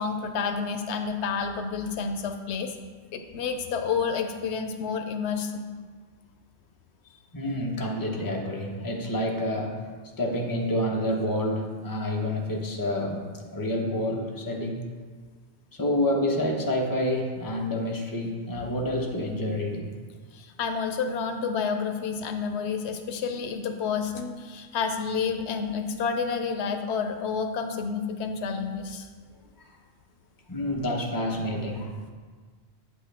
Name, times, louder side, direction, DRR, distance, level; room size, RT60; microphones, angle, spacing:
voice 1, 0.0-2.7 3.1-5.6 20.3-29.1, left 5 dB, 90° left, 6 dB, 0.9 m, -29 dB
voice 2, 7.3-9.8 10.2-14.8 15.8-19.9 29.6-29.7 30.5-32.1, left 1 dB, 20° left, -1 dB, 1.0 m, -28 dB
8.4 x 8.1 x 3.4 m, 1.5 s
omnidirectional pair, 1.1 m